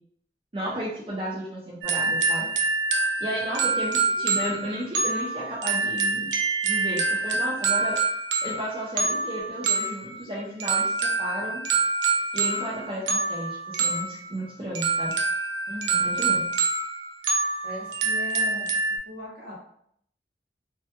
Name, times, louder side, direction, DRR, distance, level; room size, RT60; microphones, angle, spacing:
voice 1, 0.5-2.5 3.2-6.3 6.6-8.0 8.4-10.9 11.2-11.6 12.3-15.1 16.0-16.5, right 1 dB, 30° right, -6 dB, 0.5 m, -33 dB
sound 1, 1.8-19.0, right 4 dB, 85° right, 0.4 m, -26 dB
voice 2, 15.7-16.1 17.6-18.8 19.0-19.6, left 1 dB, 60° right, -3 dB, 0.8 m, -39 dB
2.2 x 2.1 x 2.8 m, 0.67 s
head